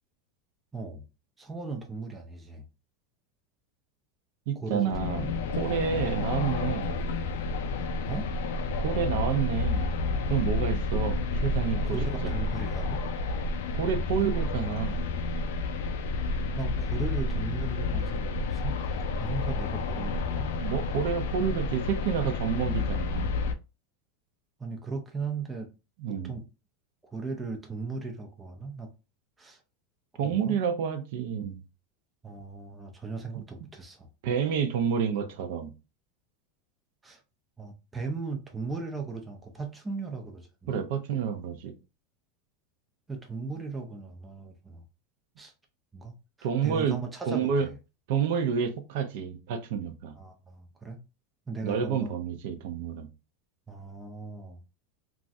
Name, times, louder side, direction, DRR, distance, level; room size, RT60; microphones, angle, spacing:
voice 1, 0.7-1.1 1.4-2.6 4.6-5.3 8.1-8.3 11.8-13.0 16.6-20.5 24.6-25.7 26.1-26.4 27.1-28.9 29.4-29.6 30.2-30.6 32.2-34.1 37.0-37.2 37.6-40.8 43.1-44.8 45.4-45.5 45.9-46.1 46.4-47.7 50.2-51.0 51.5-52.2 53.7-54.6, right 4 dB, 10° right, 0.4 m, -37 dB
voice 2, 4.5-6.9 8.8-9.9 10.3-12.0 12.2-12.4 13.7-15.0 20.6-23.3 26.0-26.4 30.2-31.6 34.2-35.7 40.7-41.7 46.4-47.0 47.3-47.7 48.1-50.2 51.6-53.1, right 7 dB, 60° right, 0.5 m, -29 dB
sound 1, 4.9-23.5, left 3 dB, 80° left, 0.4 m, -30 dB
3.0 x 2.4 x 2.6 m
supercardioid pair, 170°, 0 cm